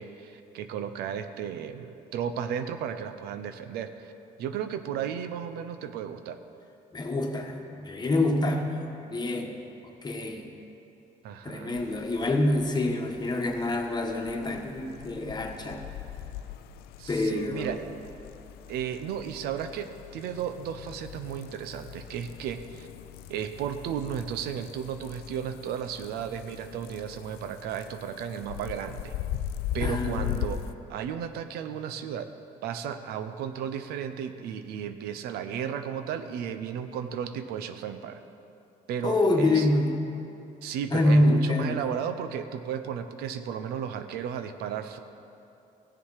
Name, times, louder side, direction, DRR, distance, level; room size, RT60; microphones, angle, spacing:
voice 1, 0.0-4.1 4.4-6.4 11.2-11.8 17.0-17.8 18.7-22.9 23.3-29.1 29.7-30.6 30.9-32.3 32.6-38.2 38.9-39.7 40.6-45.0, right 8 dB, 90° right, 9 dB, 0.6 m, -34 dB
voice 2, 6.9-9.6 9.8-10.4 11.4-15.8 17.1-17.8 29.8-30.5 39.0-40.0 40.9-41.8, left 1 dB, 25° left, 3 dB, 1.3 m, -26 dB
sound 1, 11.7-30.7, left 11 dB, 90° left, 0.4 m, -40 dB
16.0 x 7.2 x 4.8 m, 2.7 s
cardioid pair, 100°, 16 cm